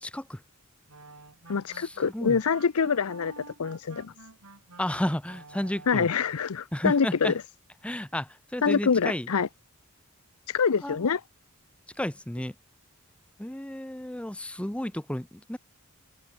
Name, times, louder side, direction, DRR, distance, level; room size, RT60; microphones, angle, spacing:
voice 1, 0.0-0.4 1.7-2.4 4.8-6.1 6.7-7.3 7.8-9.3 10.8-11.1 12.0-12.5 13.4-15.6, left 1 dB, 5° left, 0.6 m, -32 dB
sound 1, 0.9-6.4, right 3 dB, 85° right, 4.8 m, -50 dB
voice 2, 1.5-4.1 5.9-7.3 8.6-9.5 10.5-11.2, left 6 dB, 80° left, 0.6 m, -25 dB
head